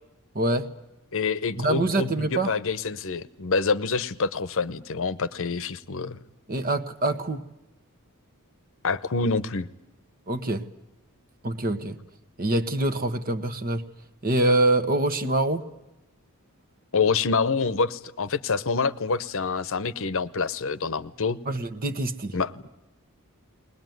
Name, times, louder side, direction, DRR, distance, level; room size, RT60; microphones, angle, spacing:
voice 1, 0.3-0.7 1.6-2.5 6.5-7.4 10.3-10.7 11.4-12.0 12.4-13.8 14.2-15.7 21.4-22.4, right 2 dB, 40° right, 11 dB, 1.3 m, -25 dB
voice 2, 1.1-6.2 8.8-9.7 16.9-21.4 22.3-22.6, left 4 dB, 60° left, 15 dB, 0.9 m, -26 dB
21.5 x 20.0 x 9.3 m, 0.91 s
head